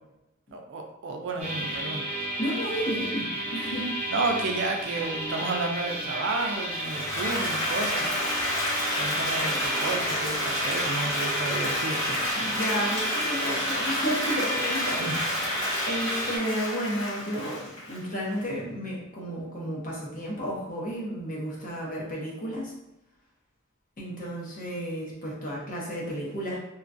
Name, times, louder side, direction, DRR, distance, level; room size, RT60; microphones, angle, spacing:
voice 1, 0.5-2.0 4.1-8.2 9.0-12.2 15.0-15.2, right 3 dB, 60° right, 3 dB, 0.4 m, -31 dB
sound 1, 1.4-16.4, right 1 dB, 35° right, 0.8 m, -32 dB
voice 2, 2.4-3.9 12.4-22.7 24.0-26.6, equal, 40° left, -4 dB, 0.8 m, -32 dB
Applause, 6.7-18.4, left 1 dB, 65° left, 1.4 m, -30 dB
2.9 x 2.3 x 2.5 m, 0.91 s
head